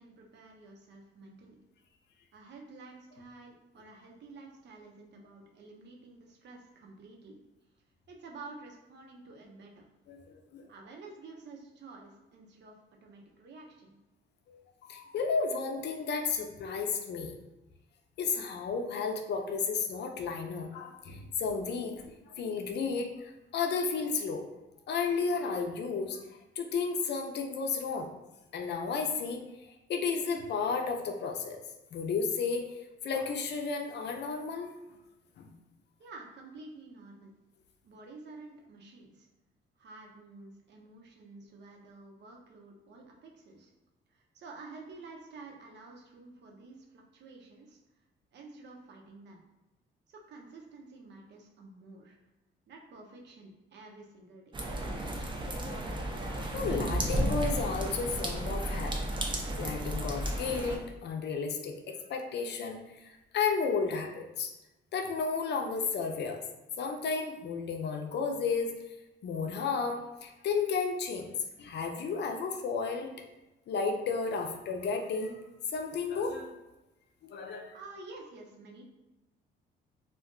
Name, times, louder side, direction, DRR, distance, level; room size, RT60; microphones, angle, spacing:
voice 1, 0.0-1.6 2.3-7.4 8.1-9.8 10.7-12.8 13.0-14.0 36.0-37.3 37.8-39.3 39.8-43.7 44.1-47.8 48.3-49.4 50.1-52.2 52.7-54.6 77.7-78.8, right 3 dB, 60° right, 0 dB, 0.7 m, -50 dB
voice 2, 10.1-10.7 14.5-17.3 18.2-24.4 24.9-28.1 28.5-31.6 31.9-35.0 35.4-35.5 56.5-59.0 59.6-64.5 64.9-66.4 66.8-69.0 69.2-71.3 71.6-73.1 73.7-75.4 75.7-76.5 77.2-77.7, left 5 dB, 60° left, 4 dB, 0.5 m, -33 dB
sound 1, 54.5-60.8, right 1 dB, 25° right, 0.6 m, -33 dB
2.5 x 2.2 x 3.7 m, 1.0 s
cardioid pair, 90°, 20 cm